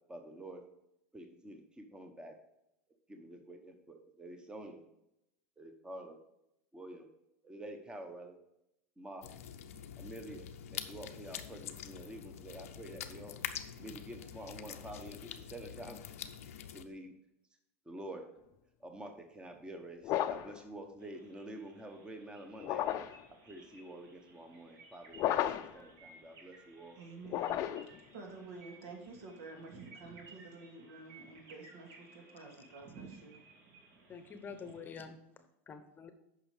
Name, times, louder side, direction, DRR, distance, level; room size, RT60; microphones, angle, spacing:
voice 1, 0.1-0.6 1.1-2.4 3.1-4.8 5.6-6.2 6.7-7.1 7.4-8.4 9.0-9.3 10.0-13.4 13.8-16.0 16.7-17.1 17.9-18.2 18.8-22.9 23.3-27.0, right 1 dB, 10° right, 5 dB, 1.0 m, -48 dB
sound 1, 9.2-16.8, left 9 dB, 90° left, 0.7 m, -45 dB
sound 2, 20.0-20.6 22.6-23.2 25.1-25.8 27.2-28.0, left 12 dB, 45° left, 0.6 m, -33 dB
sound 3, 21.0-35.1, right 4 dB, 50° right, 2.4 m, -58 dB
voice 2, 27.0-27.6 28.1-33.4, right 3 dB, 70° right, 1 dB, 2.5 m, -50 dB
voice 3, 34.1-35.2 35.7-36.1, left 5 dB, 25° left, 9 dB, 0.9 m, -46 dB
8.8 x 5.6 x 4.9 m, 0.83 s
supercardioid pair, 115°, 7 cm